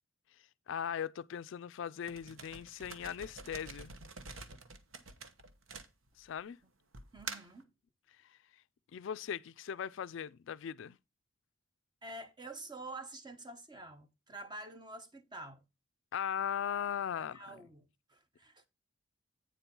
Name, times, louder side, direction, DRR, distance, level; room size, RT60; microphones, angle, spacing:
voice 1, 0.3-4.0 6.2-6.6 8.2-8.6 8.9-11.0 16.1-17.6, left 8 dB, 65° left, 0.4 m, -39 dB
sound 1, 2.1-6.4 6.9-7.6, right 4 dB, 85° right, 1.1 m, -47 dB
voice 2, 7.1-7.7 12.0-15.6 17.1-18.7, right 2 dB, 20° right, 1.1 m, -48 dB
8.8 x 4.3 x 5.3 m
head